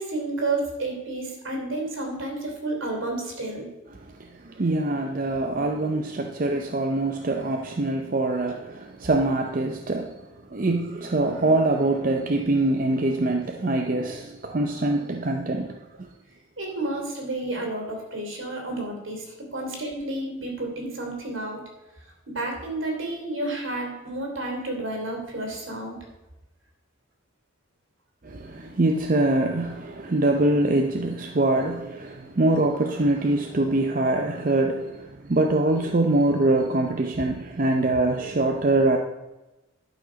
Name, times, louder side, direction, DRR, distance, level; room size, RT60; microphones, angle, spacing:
voice 1, 0.0-3.7 9.0-9.1 16.6-19.2 19.5-21.6 22.3-26.0, right 2 dB, 75° right, 1 dB, 2.9 m, -31 dB
voice 2, 4.6-10.1 10.5-15.8 28.3-35.0 35.3-39.0, right 2 dB, 40° right, 3 dB, 0.6 m, -24 dB
11.5 x 6.0 x 5.1 m, 1.0 s
head